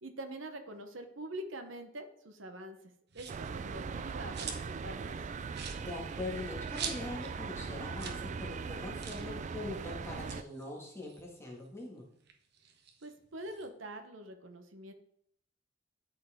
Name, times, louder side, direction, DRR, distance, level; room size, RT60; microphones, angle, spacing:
voice 1, 0.0-2.8 3.1-5.2 13.0-14.9, right 1 dB, 80° right, 7 dB, 1.0 m, -44 dB
sound 1, 3.1-3.5 4.0-4.8 5.1-5.2 5.5-7.4 7.6-7.7 7.9-8.3 8.5-8.6 9.0-9.3 10.1-11.8 12.2-13.7, right 6 dB, 60° right, 1.1 m, -44 dB
sound 2, 3.3-10.4, right 5 dB, 40° right, 0.3 m, -40 dB
voice 2, 5.8-12.1, left 2 dB, 15° left, -3 dB, 1.9 m, -42 dB
12.0 x 4.7 x 3.7 m, 0.71 s
head